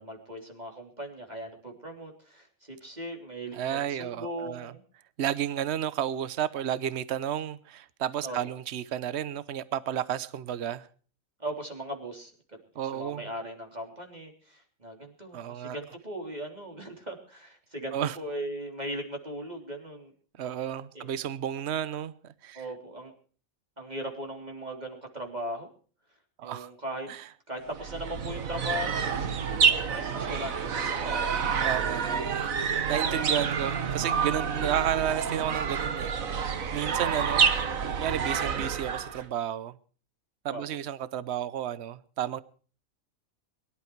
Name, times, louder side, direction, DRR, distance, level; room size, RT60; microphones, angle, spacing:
voice 1, 0.0-4.8 8.2-8.4 11.4-20.1 20.9-21.1 22.5-23.1 23.8-25.7 26.4-27.1 27.5-31.3 40.5-40.6, right 1 dB, 30° right, 3.5 m, -38 dB
voice 2, 3.5-4.7 5.2-10.9 12.7-13.3 15.3-15.8 17.9-18.2 20.4-22.7 26.4-26.7 27.1-27.2 31.6-32.5 32.9-37.5 38.0-39.8 40.4-42.4, right 10 dB, 55° right, 1.1 m, -32 dB
sound 1, 27.7-39.3, right 6 dB, 75° right, 1.7 m, -28 dB
23.0 x 12.0 x 4.6 m
omnidirectional pair, 1.5 m